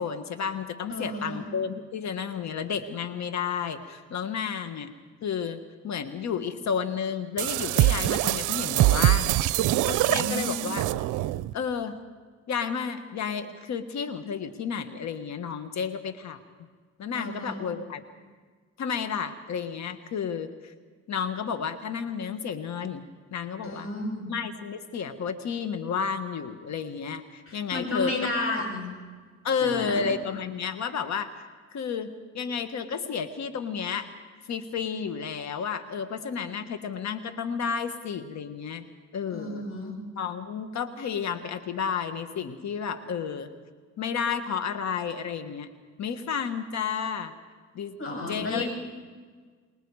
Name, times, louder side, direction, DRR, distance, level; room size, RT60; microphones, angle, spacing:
voice 1, 0.0-4.9 5.2-9.4 9.9-10.8 11.5-12.0 12.5-16.4 17.0-18.0 18.8-20.7 21.1-23.0 23.3-23.9 24.3-28.3 29.4-31.3 31.7-34.1 34.5-38.9 39.1-39.6 40.2-43.5 44.0-45.7 46.0-47.3 47.7-48.0 48.3-48.7, left 6 dB, 65° left, 9 dB, 1.6 m, -31 dB
voice 2, 0.9-1.4 10.1-10.7 17.1-17.7 23.6-24.3 27.5-28.9 29.6-30.1 39.3-39.9 48.0-48.7, left 2 dB, 45° left, 1 dB, 7.8 m, -32 dB
sound 1, 7.4-11.5, right 16 dB, 85° right, 0.6 m, -24 dB
30.0 x 20.0 x 4.9 m, 1.5 s
cardioid pair, 90°, 30 cm